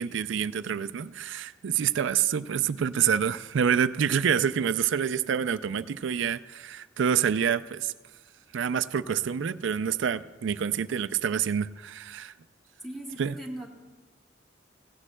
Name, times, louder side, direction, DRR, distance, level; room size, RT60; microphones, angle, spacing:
voice 1, 0.0-7.9 8.5-12.3 13.2-13.3, right 8 dB, 80° right, 15 dB, 0.4 m, -27 dB
voice 2, 12.8-13.7, right 1 dB, ahead, -2 dB, 1.2 m, -38 dB
16.5 x 16.0 x 2.2 m, 1.2 s
head